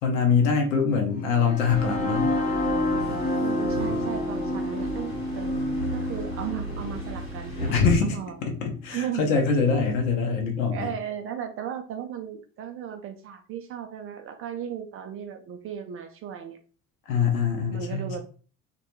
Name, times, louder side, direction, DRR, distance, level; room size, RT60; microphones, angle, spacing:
voice 1, 0.0-2.3 7.6-8.2 8.4-10.9 17.1-18.2, left 5 dB, 65° left, 3 dB, 0.8 m, -24 dB
sound 1, 1.2-9.1, left 1 dB, 20° left, 0.6 m, -29 dB
sound 2, 1.7-7.9, right 1 dB, 85° left, 1.1 m, -36 dB
voice 2, 3.4-5.6 5.9-7.7 8.0-8.4 8.9-9.3 9.7-9.9 10.7-16.6 17.7-18.2, right 9 dB, 35° right, 6 dB, 0.4 m, -36 dB
2.2 x 2.2 x 2.9 m, 0.40 s
figure-of-eight pair, 55°, 42 cm